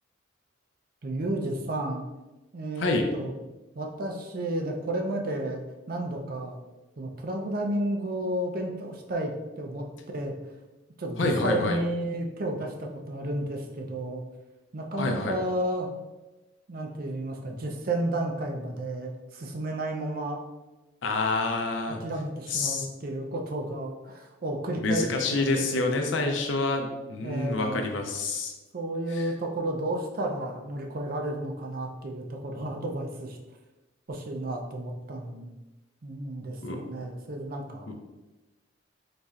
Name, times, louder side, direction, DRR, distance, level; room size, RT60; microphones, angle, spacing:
voice 1, 1.0-2.0 2.5-3.3 3.7-6.6 7.0-10.3 11.0-14.2 14.7-15.9 16.7-20.4 22.0-26.4 27.2-27.9 28.7-33.4 34.1-35.5 36.0-38.0, right 1 dB, 50° right, 2 dB, 0.5 m, -32 dB
voice 2, 11.2-11.8 15.0-15.3 21.0-22.0 22.5-22.9 24.8-28.5 29.2-29.3 36.6-36.8 37.9-38.0, left 3 dB, 75° left, 3 dB, 0.5 m, -27 dB
4.1 x 3.2 x 2.4 m, 1.1 s
head